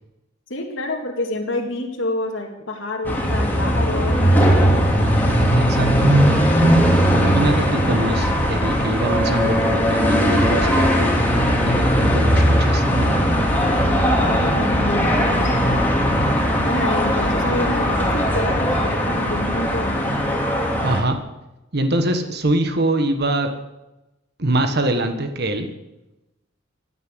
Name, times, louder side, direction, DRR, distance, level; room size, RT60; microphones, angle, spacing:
voice 1, 0.5-4.8 14.4-15.9 16.6-20.0, left 2 dB, 70° left, 1 dB, 2.3 m, -28 dB
sound 1, 3.0-21.0, equal, 10° left, 3.0 m, -18 dB
voice 2, 5.6-6.1 7.1-10.9 11.6-13.2 20.8-21.2 21.7-23.5 24.4-25.7, right 1 dB, 55° right, 7 dB, 1.4 m, -23 dB
15.5 x 9.8 x 8.0 m, 0.97 s
head